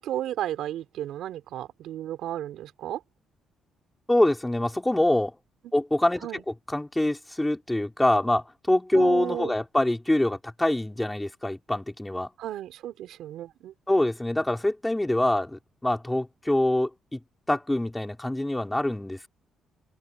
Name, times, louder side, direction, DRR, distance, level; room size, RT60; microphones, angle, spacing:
voice 1, 0.0-3.0 5.6-5.7 6.2-6.4 8.9-9.6 12.4-13.7, right 12 dB, 80° right, 4.6 m, -34 dB
voice 2, 4.1-5.3 5.7-6.3 6.7-12.3 13.9-17.2 17.5-19.3, left 1 dB, 10° left, 5.3 m, -25 dB
open air
cardioid pair, 90°, 0 cm